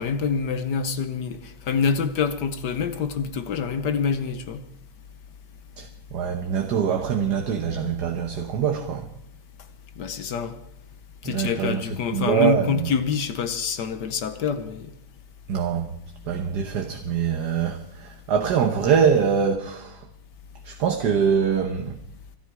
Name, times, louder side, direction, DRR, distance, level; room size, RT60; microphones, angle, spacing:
voice 1, 0.0-4.6 10.0-10.6 11.2-14.9, left 6 dB, 65° left, 1.4 m, -26 dB
voice 2, 5.8-9.1 11.2-12.9 15.5-15.9 16.3-20.0 20.6-22.0, right 7 dB, 60° right, 1.5 m, -24 dB
25.0 x 11.0 x 4.8 m
omnidirectional pair, 2.1 m